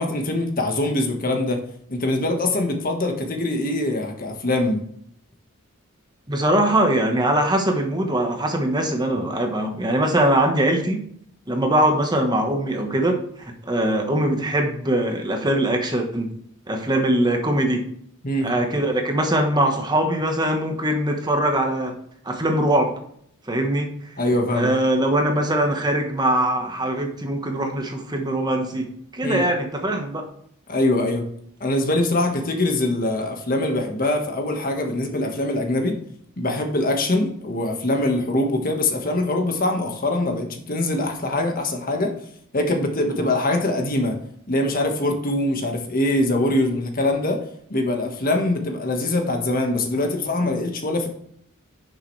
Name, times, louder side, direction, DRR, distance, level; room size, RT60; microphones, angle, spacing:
voice 1, 0.0-1.6 1.9-4.8 18.2-18.5 24.2-24.7 29.2-29.4 30.7-31.2 31.6-35.9 36.4-42.2 42.5-44.2 44.5-47.4 47.7-51.1, left 1 dB, 40° left, 4 dB, 1.5 m, -23 dB
voice 2, 6.3-11.0 11.5-16.3 16.7-17.8 18.4-21.9 22.2-22.9 23.5-23.9 24.5-28.9 29.1-30.2 43.2-43.3, right 1 dB, 20° right, 3 dB, 1.2 m, -22 dB
10.5 x 6.7 x 3.3 m, 0.67 s
head